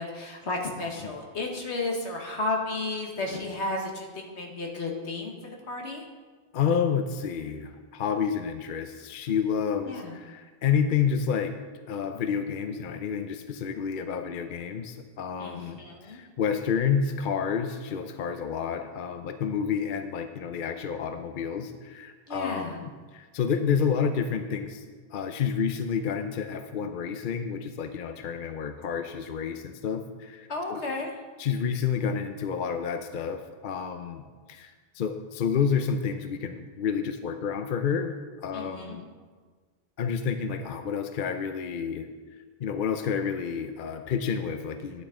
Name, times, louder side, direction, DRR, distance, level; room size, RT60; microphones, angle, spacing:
voice 1, 0.0-6.0 9.9-10.2 15.4-16.2 22.3-22.8 30.5-31.1 38.5-39.0, left 2 dB, 80° left, 1 dB, 1.7 m, -33 dB
voice 2, 6.5-11.5 11.9-24.8 25.1-30.8 31.4-34.2 34.5-39.1 40.0-42.1 42.6-45.0, left 7 dB, 55° left, 7 dB, 0.7 m, -29 dB
11.5 x 8.3 x 3.7 m, 1.5 s
omnidirectional pair, 1.1 m